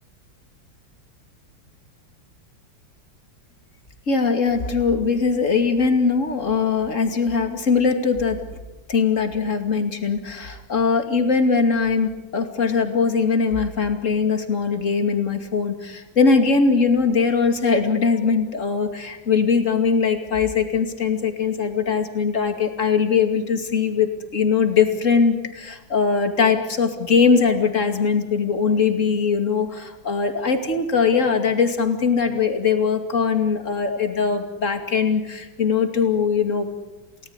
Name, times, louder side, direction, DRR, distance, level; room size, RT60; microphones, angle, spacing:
voice 1, 4.1-8.4 8.9-36.7, left 5 dB, 40° left, 6 dB, 2.8 m, -21 dB
30.0 x 18.5 x 9.8 m, 1.1 s
omnidirectional pair, 2.1 m